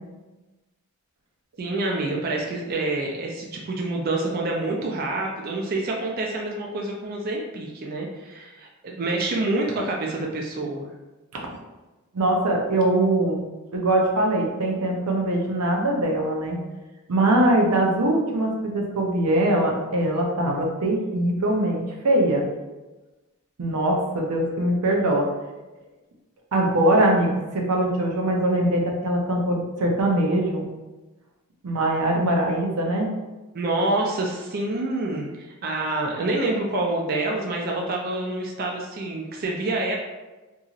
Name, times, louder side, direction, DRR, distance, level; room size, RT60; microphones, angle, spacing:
voice 1, 1.6-10.9 33.5-39.9, right 2 dB, 45° right, -1 dB, 0.3 m, -27 dB
voice 2, 12.1-13.4 13.7-16.6 17.1-22.4 23.6-25.3 26.5-30.6 31.6-33.1, right 1 dB, 90° right, 0 dB, 0.6 m, -22 dB
2.8 x 2.7 x 2.4 m, 1.1 s
head